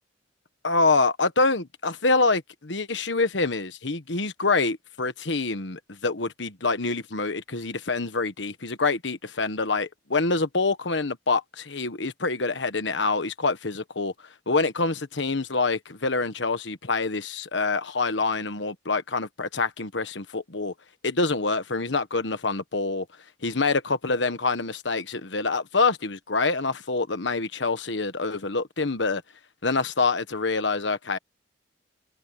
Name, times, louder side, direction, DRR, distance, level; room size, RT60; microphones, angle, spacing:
voice 1, 0.6-14.1 14.5-20.7 21.0-23.0 23.4-29.2 29.6-31.2, left 3 dB, 70° left, 1.4 m, -26 dB
head